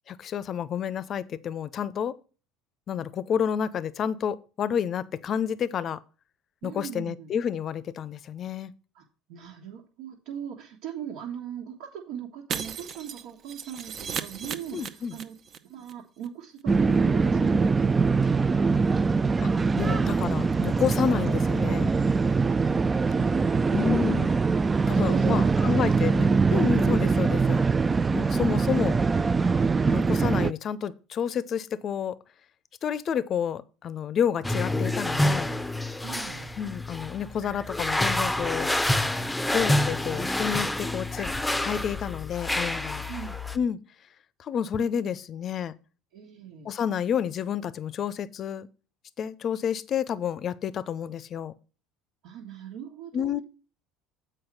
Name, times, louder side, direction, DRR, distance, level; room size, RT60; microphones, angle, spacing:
voice 1, 0.1-2.2 2.9-6.0 6.6-8.7 14.7-15.2 19.8-21.9 23.7-24.3 24.9-27.6 28.1-29.0 29.9-32.2 32.8-35.5 36.6-38.7 39.5-41.3 41.6-43.0 43.5-43.8 44.4-45.7 46.6-48.7 49.2-51.5 53.1-53.4, left 8 dB, 45° left, 0.6 m, -29 dB
voice 2, 6.6-7.3 8.9-9.0 9.3-15.4 15.6-18.5 22.5-22.6 24.7-26.1 36.0-36.5 43.1-43.4 46.1-46.7 52.2-53.4, right 9 dB, 70° right, 1.5 m, -39 dB
Shatter, 12.5-15.6 15.8-15.9 16.2-16.3, right 7 dB, 45° right, 0.8 m, -36 dB
sound 1, 16.7-30.5, right 4 dB, 25° right, 0.4 m, -23 dB
sound 2, 34.4-43.6, left 1 dB, 10° left, 0.7 m, -28 dB
7.9 x 4.6 x 6.0 m
hypercardioid pair, 70°, 0 cm